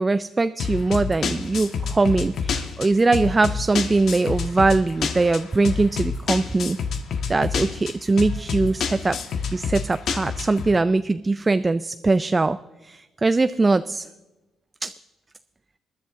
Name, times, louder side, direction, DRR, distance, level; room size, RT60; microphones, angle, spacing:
voice 1, 0.0-6.8 7.3-9.2 9.5-12.6 12.8-14.1 14.8-14.9, right 3 dB, 25° right, 12 dB, 0.4 m, -21 dB
sound 1, 0.6-10.7, left 5 dB, 65° left, 1.4 m, -28 dB
21.0 x 11.0 x 3.7 m, 1.1 s
cardioid pair, 90°, 0 cm